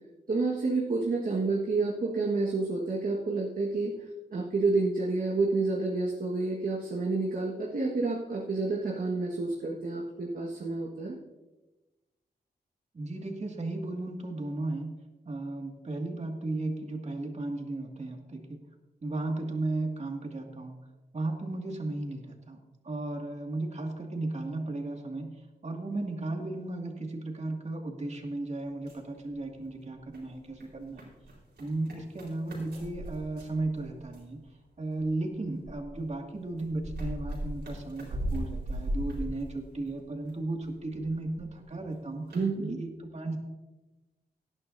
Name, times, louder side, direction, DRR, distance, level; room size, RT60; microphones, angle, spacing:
voice 1, 0.3-3.9 4.3-11.2 42.3-42.8, right 3 dB, 55° right, -2 dB, 1.6 m, -29 dB
voice 2, 12.9-14.9 15.3-18.6 19.0-20.8 21.1-22.6 22.8-31.1 31.6-34.4 34.8-42.4 42.7-43.4, right 2 dB, 40° right, 2 dB, 2.2 m, -35 dB
sound 1, 28.7-29.7 30.0-34.4 35.0-40.3 40.6-41.5 41.9-42.0 42.3-42.4, equal, 90° right, 4.4 m, -38 dB
18.0 x 11.0 x 2.7 m, 1.1 s
cardioid pair, 70°, 17 cm